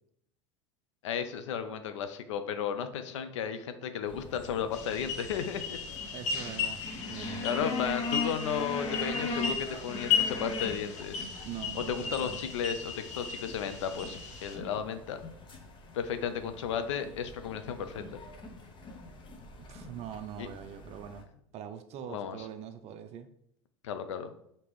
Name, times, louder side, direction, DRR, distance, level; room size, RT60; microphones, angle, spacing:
voice 1, 1.0-5.8 7.4-11.3 11.7-15.2 15.9-18.2 20.4-20.5 22.1-22.5 23.8-24.3, left 7 dB, 80° left, 9 dB, 0.5 m, -34 dB
sound 1, 4.1-21.2, left 3 dB, 30° left, 0.7 m, -41 dB
sound 2, 4.7-14.6, left 6 dB, 50° left, 1.0 m, -35 dB
voice 2, 6.1-7.4 11.4-12.4 19.6-21.3 21.5-23.3, right 9 dB, 45° right, 10 dB, 0.5 m, -43 dB
5.1 x 2.9 x 3.1 m, 0.74 s
hypercardioid pair, 95°, 15 cm